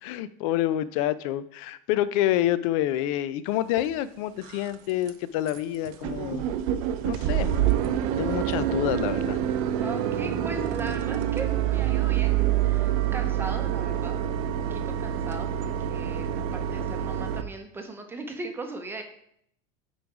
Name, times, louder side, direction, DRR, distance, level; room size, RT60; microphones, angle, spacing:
voice 1, 0.0-6.4 7.0-7.8 8.2-9.4, left 13 dB, 70° left, 15 dB, 0.5 m, -27 dB
sound 1, 3.8-3.9 4.4-4.7 5.1-5.2 5.5-5.6 5.8-17.4, right 11 dB, 75° right, 0.7 m, -27 dB
voice 2, 9.8-19.0, right 3 dB, 10° right, 4 dB, 0.7 m, -39 dB
9.3 x 4.0 x 4.8 m, 0.70 s
cardioid pair, 160°, 18 cm